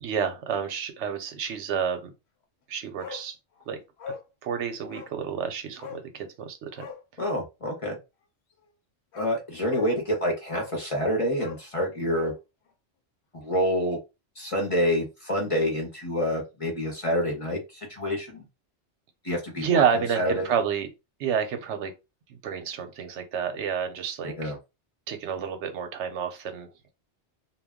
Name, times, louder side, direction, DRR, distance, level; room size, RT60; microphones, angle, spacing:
voice 1, 0.0-2.1 2.7-3.4 3.7-3.8 4.1-4.2 4.4-6.9 19.6-20.9 21.2-21.9 22.3-24.5 25.1-26.7, right 7 dB, 85° right, 0.9 m, -29 dB
Bark, 3.0-3.3 3.6-3.7 4.0-4.3 4.9-5.2 5.8-6.1 6.7-7.0 8.6-8.7 9.1-9.4 9.7-9.9 10.5-10.8 11.3-12.4 12.7-12.8, left 6 dB, 70° left, 0.9 m, -41 dB
voice 2, 7.2-8.0 9.1-12.3 13.3-14.0 14.3-18.4 19.2-20.5 24.2-24.6, equal, 35° left, 0.7 m, -27 dB
2.2 x 2.2 x 3.5 m
omnidirectional pair, 1.2 m